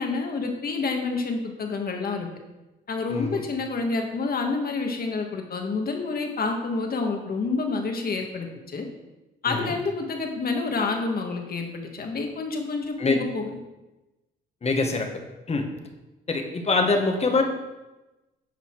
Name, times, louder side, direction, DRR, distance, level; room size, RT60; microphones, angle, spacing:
voice 1, 0.0-2.3 2.9-8.9 9.4-13.4, left 4 dB, 50° left, 3 dB, 1.9 m, -28 dB
voice 2, 3.1-3.4 9.5-9.7 13.0-13.2 14.6-15.1 15.5-15.9 16.3-17.4, left 3 dB, 30° left, 4 dB, 1.7 m, -24 dB
11.0 x 6.8 x 4.8 m, 1.1 s
cardioid pair, 90°, 20 cm